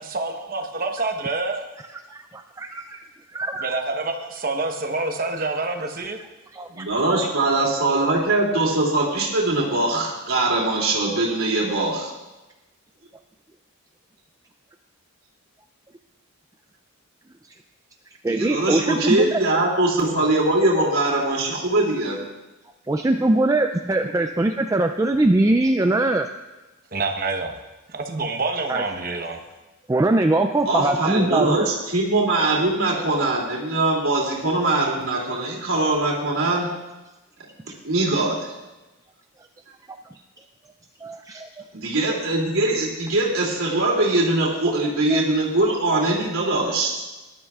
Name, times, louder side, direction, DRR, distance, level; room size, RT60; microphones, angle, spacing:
voice 1, 0.1-1.7 3.6-6.2 26.9-27.5 27.9-29.4, right 3 dB, 40° right, 4 dB, 1.0 m, -27 dB
voice 2, 1.9-3.0 3.3-3.6 6.5-6.9 18.2-19.4 22.9-26.3 28.7-28.8 29.9-31.7 37.7-37.8 41.0-41.6 45.1-45.2, right 2 dB, 15° right, 6 dB, 0.3 m, -22 dB
voice 3, 6.7-12.1 18.3-22.2 30.6-36.7 37.8-38.5 41.7-47.0, right 2 dB, 70° right, -4 dB, 2.7 m, -22 dB
18.5 x 11.5 x 2.4 m, 1.1 s
head